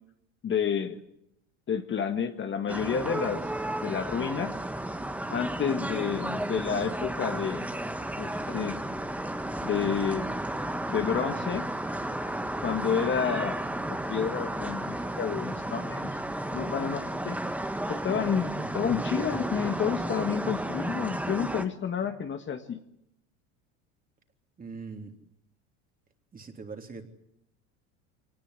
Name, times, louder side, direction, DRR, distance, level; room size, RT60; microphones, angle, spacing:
voice 1, 0.4-1.0 1.7-3.5 3.8-4.6 5.3-7.7 8.2-8.8 9.6-10.3 10.9-11.7 12.6-13.6 13.9-16.1 16.5-17.4 17.9-22.8, left 7 dB, 35° left, 7 dB, 1.8 m, -30 dB
sound 1, 2.7-21.6, right 1 dB, 5° right, 1.6 m, -33 dB
voice 2, 24.6-25.1 26.3-27.0, right 4 dB, 25° right, 5 dB, 3.4 m, -42 dB
23.5 x 19.5 x 9.9 m, 0.80 s
supercardioid pair, 105°, 36 cm